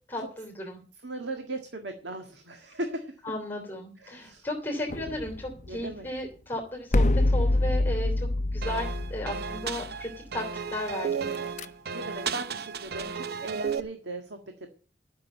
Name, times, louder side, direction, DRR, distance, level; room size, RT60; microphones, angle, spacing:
voice 1, 0.1-0.8 3.2-11.3, left 1 dB, 10° left, 1 dB, 3.1 m, -35 dB
voice 2, 1.0-3.2 4.0-4.5 5.7-6.1 11.7-14.4, right 2 dB, 85° right, 4 dB, 1.8 m, -38 dB
sound 1, 4.9-6.2 6.9-10.2 11.3-11.7, left 2 dB, 45° left, 0.7 m, -26 dB
sound 2, 8.6-13.8, right 6 dB, 60° right, 0.7 m, -34 dB
13.5 x 6.8 x 8.1 m, 0.39 s
head